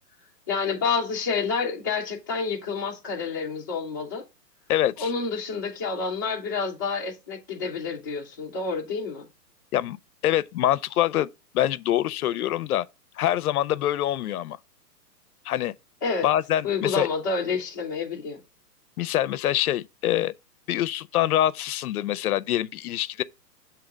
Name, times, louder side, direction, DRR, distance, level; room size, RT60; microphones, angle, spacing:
voice 1, 0.5-4.2 5.0-9.3 16.0-16.3 16.6-18.4, left 4 dB, 15° left, 0.4 m, -28 dB
voice 2, 4.7-5.1 9.7-10.0 10.2-12.8 13.2-14.6 15.4-15.7 16.2-17.1 19.0-20.3 20.7-23.2, left 12 dB, 65° left, 0.5 m, -25 dB
7.0 x 2.9 x 5.0 m
hypercardioid pair, 140°, 49 cm